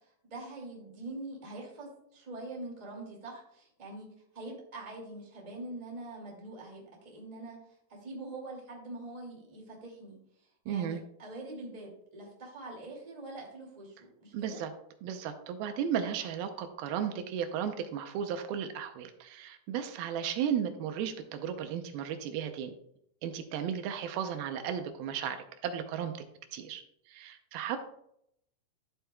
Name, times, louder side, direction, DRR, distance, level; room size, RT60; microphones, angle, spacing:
voice 1, 0.3-4.1 4.3-7.6 7.9-10.2 10.6-14.6, right 2 dB, 15° right, -1 dB, 1.7 m, -44 dB
voice 2, 10.7-11.0 14.3-14.7 15.0-22.8 23.2-26.1 26.5-26.8 27.1-27.8, right 8 dB, 85° right, 7 dB, 2.7 m, -34 dB
12.5 x 7.9 x 2.3 m, 0.74 s
omnidirectional pair, 4.2 m